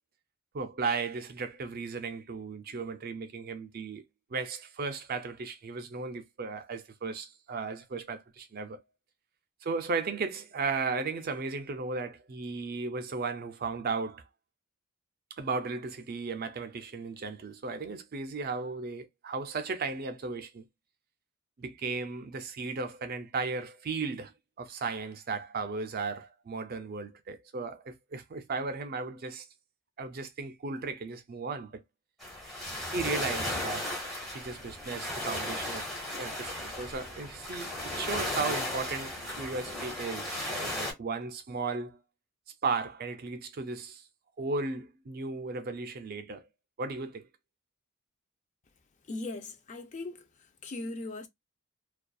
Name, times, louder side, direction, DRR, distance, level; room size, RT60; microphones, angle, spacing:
voice 1, 0.5-4.0 4.3-8.8 9.6-14.2 15.4-20.7 21.6-24.3 24.6-29.4 30.0-31.8 32.9-34.0 34.3-35.9 36.2-42.0 42.6-44.0 44.4-46.5 46.8-47.3, right 4 dB, 45° right, 0.4 m, -35 dB
sound 1, 32.2-40.9, left 1 dB, ahead, 1.2 m, -35 dB
voice 2, 49.1-50.3 50.6-51.3, left 2 dB, 35° left, 0.4 m, -38 dB
2.5 x 2.3 x 2.2 m
head